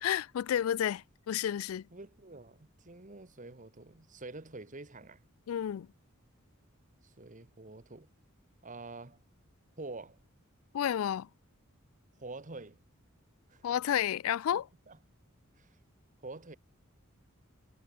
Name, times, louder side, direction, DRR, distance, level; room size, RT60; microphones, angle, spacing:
voice 1, 0.0-1.8 5.5-5.9 10.7-11.3 13.6-14.7, left 10 dB, 80° left, 0.3 m, -31 dB
voice 2, 1.9-5.2 7.0-8.1 8.6-9.2 9.8-10.2 12.2-12.8 13.5-13.6 14.5-15.0 15.6-15.7 16.2-16.6, right 2 dB, 40° right, 1.6 m, -47 dB
head